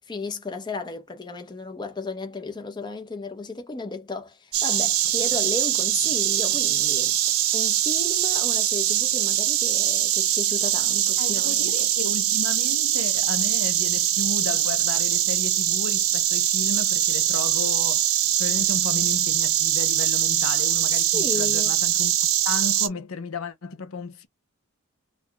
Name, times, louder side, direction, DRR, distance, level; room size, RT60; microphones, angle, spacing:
voice 1, 0.0-7.2 7.5-11.9 20.9-21.7, left 3 dB, 20° left, 0.6 m, -34 dB
Insect, 4.5-22.9, right 12 dB, 70° right, 0.5 m, -22 dB
voice 2, 11.2-22.2 22.4-24.3, left 4 dB, 70° left, 0.6 m, -34 dB
4.0 x 2.2 x 2.8 m
head